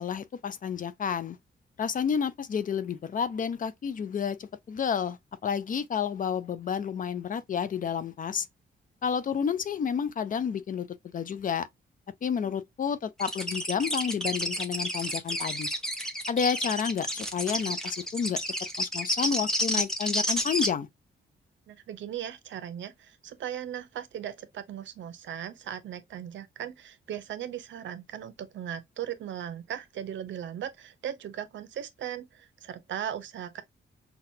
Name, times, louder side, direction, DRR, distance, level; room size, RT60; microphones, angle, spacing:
voice 1, 0.0-1.4 1.8-8.5 9.0-10.9 11.1-11.7 12.2-15.7 16.3-18.4 18.8-20.9, left 7 dB, 45° left, 0.5 m, -30 dB
sound 1, 13.2-20.7, equal, 5° left, 0.8 m, -30 dB
voice 2, 21.7-33.6, right 10 dB, 70° right, 0.7 m, -38 dB
5.8 x 2.3 x 2.7 m
wide cardioid pair, 135°, 20 cm